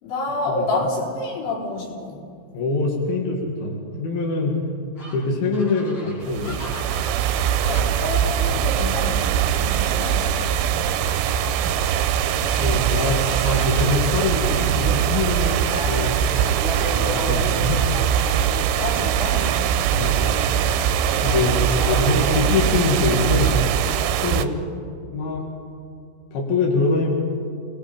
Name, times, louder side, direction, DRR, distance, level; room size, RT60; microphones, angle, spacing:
voice 1, 0.0-2.2 7.7-9.3 9.6-10.2 18.8-19.5 21.9-22.5 22.9-23.2 24.3-24.5, left 2 dB, 70° left, -4 dB, 6.5 m, -29 dB
voice 2, 2.5-4.6 5.1-6.6 12.3-16.3 16.9-17.8 19.9-20.3 21.2-23.6 24.2-24.5 25.1-25.5 26.3-27.1, left 3 dB, 55° left, -2 dB, 3.7 m, -24 dB
sound 1, 5.0-10.3 10.9-23.5, left 1 dB, 35° left, 3.4 m, -36 dB
sound 2, 6.2-24.5, right 9 dB, 90° right, 3.2 m, -22 dB
29.0 x 20.0 x 5.3 m, 2.3 s
omnidirectional pair, 5.5 m